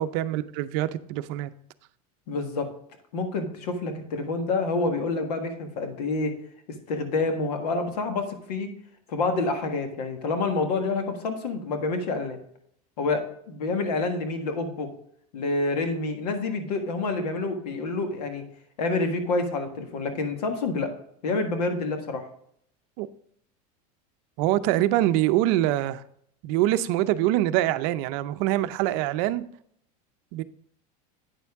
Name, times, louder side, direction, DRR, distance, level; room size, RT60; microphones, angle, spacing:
voice 1, 0.0-1.5 23.0-23.1 24.4-26.0 26.4-29.4 30.3-30.4, right 14 dB, 55° right, 13 dB, 0.6 m, -24 dB
voice 2, 2.3-2.7 3.1-6.3 6.9-8.7 9.1-12.4 13.0-14.9 15.3-18.4 18.8-20.9 21.2-22.2, left 3 dB, 90° left, 5 dB, 1.6 m, -28 dB
9.0 x 6.9 x 3.6 m, 0.67 s
supercardioid pair, 135°, 20 cm